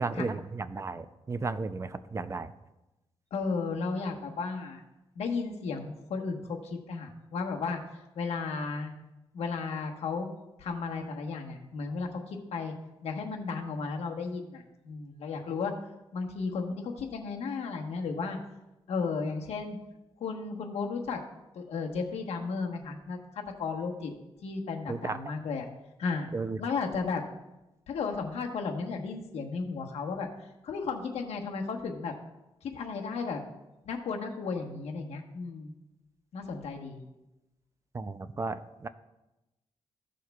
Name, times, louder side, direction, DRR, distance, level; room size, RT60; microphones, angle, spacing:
voice 1, 0.0-2.5 24.9-25.3 26.3-26.6 37.9-38.9, right 4 dB, 30° right, 12 dB, 0.4 m, -34 dB
voice 2, 3.3-4.8 5.1-8.9 9.3-10.3 10.6-12.7 13.0-15.7 16.1-18.4 18.9-19.8 20.2-21.2 21.5-24.1 24.4-25.7 26.0-26.3 26.6-27.2 27.9-32.1 32.6-33.4 33.8-35.7 36.3-37.0, left 4 dB, 85° left, 3 dB, 1.2 m, -34 dB
15.0 x 6.4 x 2.3 m, 0.98 s
cardioid pair, 115°, 10 cm